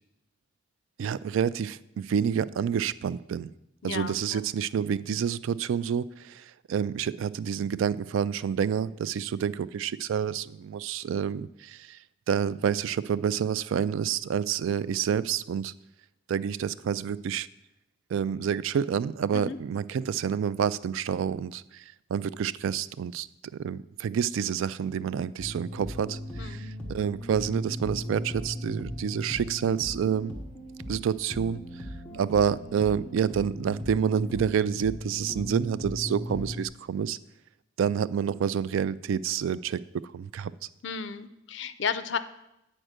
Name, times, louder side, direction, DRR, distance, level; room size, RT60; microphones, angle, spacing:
voice 1, 1.0-3.5 3.8-12.0 12.3-15.7 16.3-17.5 18.1-23.3 23.6-30.3 30.9-31.9 32.1-37.2 37.8-39.8 40.1-40.5, right 7 dB, 75° right, 17 dB, 0.3 m, -28 dB
voice 2, 3.8-4.4 19.3-19.6 26.4-26.7 40.8-42.2, left 6 dB, 60° left, 12 dB, 0.5 m, -33 dB
sound 1, 25.4-36.7, equal, 5° left, 1.0 m, -38 dB
8.9 x 4.4 x 6.4 m, 0.85 s
head